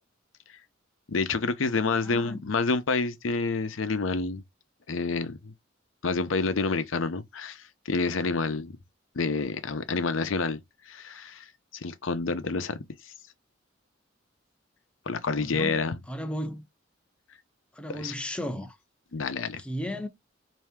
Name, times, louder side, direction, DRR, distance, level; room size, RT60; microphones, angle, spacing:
voice 1, 1.1-4.4 4.9-5.5 6.0-8.8 9.2-10.6 10.9-11.4 11.8-12.8 15.1-16.0 17.9-18.1 19.1-19.6, left 4 dB, 85° left, 0.6 m, -28 dB
voice 2, 2.0-2.5 15.4-16.6 17.7-18.8 19.6-20.1, equal, 5° left, 0.5 m, -35 dB
4.3 x 2.7 x 3.4 m
head